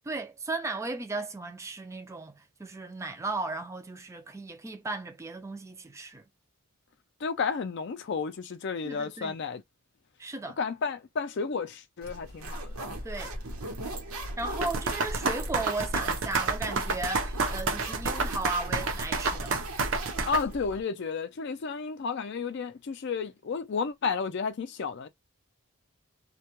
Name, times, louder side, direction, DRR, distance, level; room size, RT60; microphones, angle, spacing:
voice 1, 0.0-6.2 8.8-9.4 10.2-10.6 13.0-13.3 14.4-19.6, right 2 dB, 15° right, 0.3 m, -36 dB
voice 2, 7.2-9.6 10.6-12.7 20.3-25.1, left 5 dB, 55° left, 0.4 m, -32 dB
sound 1, 12.0-20.8, right 1 dB, 85° right, 0.9 m, -37 dB
sound 2, 14.6-20.4, right 4 dB, 60° right, 0.6 m, -29 dB
2.2 x 2.1 x 2.9 m
head